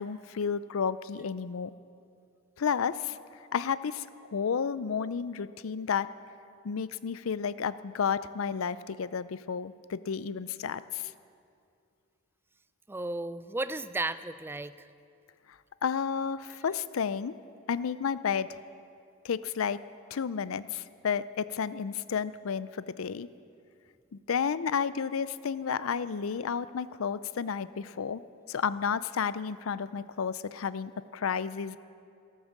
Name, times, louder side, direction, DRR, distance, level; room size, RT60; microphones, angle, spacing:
voice 1, 0.0-1.7 2.6-3.2 3.5-4.1 4.3-6.1 6.6-11.1 15.8-17.3 17.7-18.6 19.2-19.8 20.1-23.3 24.3-28.2 28.5-31.8, left 6 dB, 75° left, 16 dB, 0.5 m, -31 dB
voice 2, 12.9-14.9, right 2 dB, 10° right, 14 dB, 0.4 m, -34 dB
14.5 x 12.5 x 7.3 m, 2.4 s
head